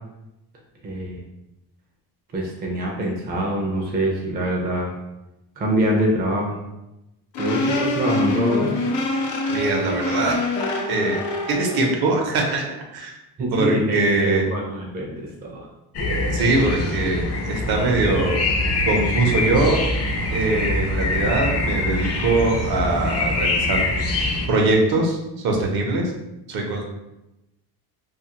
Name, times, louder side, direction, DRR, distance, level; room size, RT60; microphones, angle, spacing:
voice 1, 0.8-1.2 2.3-4.9 5.6-6.6 7.4-8.7 13.4-15.7, equal, 25° right, -1 dB, 0.4 m, -24 dB
sound 1, 7.3-11.9, left 2 dB, 85° left, 0.7 m, -25 dB
voice 2, 9.5-10.4 10.9-12.7 12.9-13.1 13.5-14.4 16.3-18.4 18.8-19.8 20.3-23.8 24.5-26.1 26.5-26.8, right 2 dB, 65° right, 1 dB, 0.7 m, -22 dB
sound 2, 15.9-24.5, left 2 dB, 40° left, 0.4 m, -24 dB
2.6 x 2.4 x 2.8 m, 0.94 s
cardioid pair, 155°, 40 cm